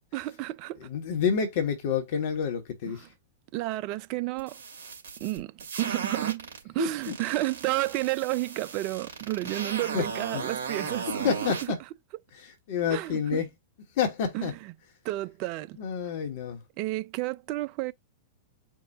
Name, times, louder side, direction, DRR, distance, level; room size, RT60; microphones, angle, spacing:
voice 1, 0.1-0.9 3.0-3.1 3.5-4.6 5.2-5.5 5.8-11.7 12.9-13.4 14.3-14.5 15.0-15.8 16.8-17.9, right 18 dB, 45° right, 0.3 m, -31 dB
voice 2, 0.8-3.1 6.8-7.1 9.9-10.0 10.3-10.4 10.8-10.9 11.2-11.8 12.3-13.5 13.9-14.5 15.8-16.6, left 7 dB, 55° left, 1.0 m, -29 dB
sound 1, 4.4-6.6 7.0-11.7, right 5 dB, 65° right, 2.5 m, -36 dB
4.6 x 2.1 x 4.0 m
hypercardioid pair, 105°, 0 cm